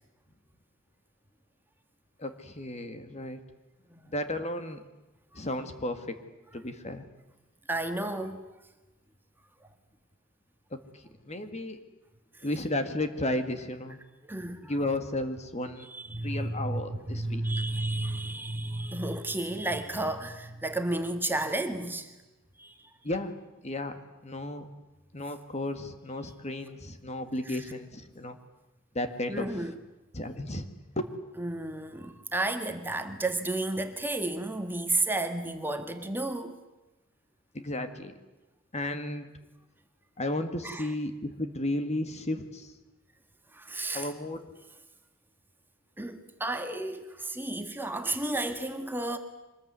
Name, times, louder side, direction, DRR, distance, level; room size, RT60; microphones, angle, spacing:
voice 1, 2.2-3.4 4.1-4.8 5.3-6.2 6.5-7.1 10.9-11.8 12.4-14.0 14.6-15.9 16.2-17.4 23.0-23.3 23.6-24.7 25.1-28.4 28.9-29.7 30.1-30.7 31.0-31.1 37.5-38.1 38.7-39.3 40.2-42.7 43.9-44.5, left 1 dB, 35° left, 1.9 m, -33 dB
voice 2, 7.7-8.5 12.3-12.4 14.3-14.7 15.8-22.1 22.6-22.9 27.4-27.6 29.3-29.7 31.4-36.5 40.6-40.9 43.5-44.1 46.0-49.2, right 2 dB, 10° right, 1.6 m, -32 dB
24.5 x 20.5 x 9.6 m
head